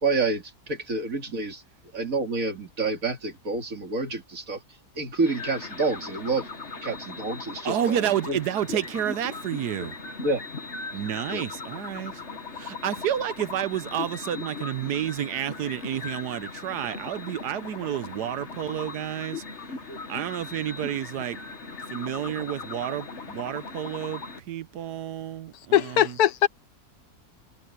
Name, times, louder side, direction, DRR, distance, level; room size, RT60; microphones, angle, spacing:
voice 1, 0.0-1.6 1.9-4.6 5.0-6.4 6.8-8.4 9.8-9.9 10.2-10.4 11.3-11.4, right 3 dB, 55° right, 3.1 m, -28 dB
sound 1, 5.2-24.4, left 4 dB, 45° left, 2.0 m, -39 dB
voice 2, 7.6-10.0 10.9-12.1 12.6-19.4 20.1-21.4 21.9-24.2 24.5-26.2, right 10 dB, 90° right, 1.4 m, -30 dB
voice 3, 25.7-26.5, left 11 dB, 75° left, 1.2 m, -20 dB
omnidirectional pair, 1.7 m